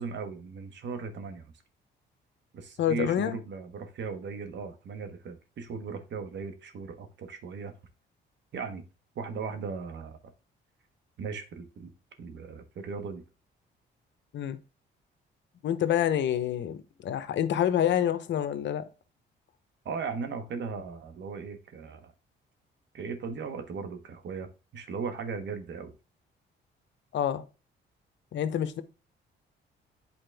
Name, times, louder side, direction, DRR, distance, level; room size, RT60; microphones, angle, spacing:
voice 1, 0.0-1.5 2.5-7.7 8.5-8.8 9.1-10.2 11.2-11.9 12.2-13.2 19.8-22.1 22.9-25.9, right 5 dB, 65° right, 1.4 m, -37 dB
voice 2, 2.8-3.4 14.3-14.6 15.6-18.9 27.1-27.5 28.3-28.8, left 10 dB, 70° left, 0.8 m, -27 dB
8.7 x 4.1 x 3.4 m
cardioid pair, 90°, 20 cm